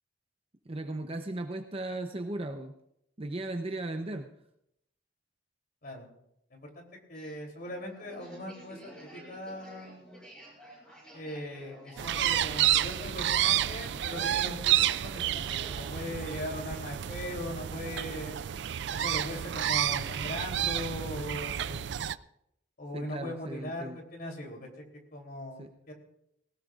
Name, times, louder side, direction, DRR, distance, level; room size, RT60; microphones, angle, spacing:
voice 1, 0.7-2.7 3.2-4.3 22.9-24.0 25.6-25.7, right 2 dB, 30° right, 5 dB, 0.8 m, -36 dB
voice 2, 6.5-10.1 11.1-18.4 18.9-21.9 22.8-24.7 25.1-25.9, left 1 dB, 55° left, 1 dB, 3.4 m, -40 dB
sound 1, 7.1-17.0, right 1 dB, 5° left, 5.7 m, -51 dB
sound 2, 12.0-22.1, right 11 dB, 65° right, 0.4 m, -30 dB
19.5 x 18.0 x 2.5 m, 0.78 s
head